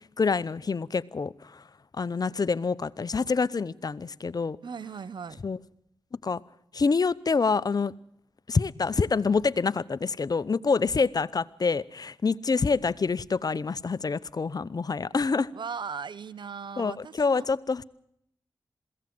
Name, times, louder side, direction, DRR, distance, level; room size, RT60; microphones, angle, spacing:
voice 1, 0.2-1.6 1.9-4.6 5.4-5.6 6.2-6.4 6.7-7.9 8.5-15.5 16.8-17.8, left 4 dB, 50° left, 0.8 m, -26 dB
voice 2, 4.6-5.4 15.5-17.5, right 6 dB, 70° right, 0.8 m, -38 dB
22.0 x 16.5 x 7.8 m
cardioid pair, 45°, 8 cm